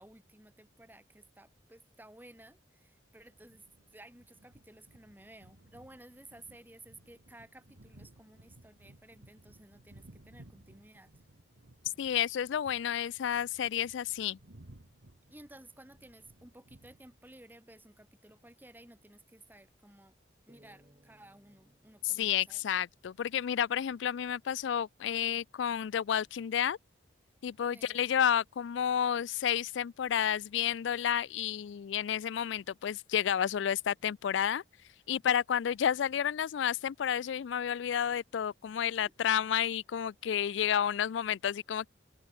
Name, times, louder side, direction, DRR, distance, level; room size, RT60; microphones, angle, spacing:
voice 1, 0.0-3.6 3.9-11.2 15.3-20.1 20.5-22.6 27.6-28.1, right 1 dB, 10° right, 2.4 m, -55 dB
sound 1, 3.2-17.5, right 1 dB, 75° right, 1.8 m, -59 dB
voice 2, 12.0-14.4 22.0-26.8 27.4-34.6 35.1-41.9, left 9 dB, 75° left, 0.4 m, -31 dB
sound 2, 20.5-23.9, equal, 25° right, 4.5 m, -66 dB
open air
head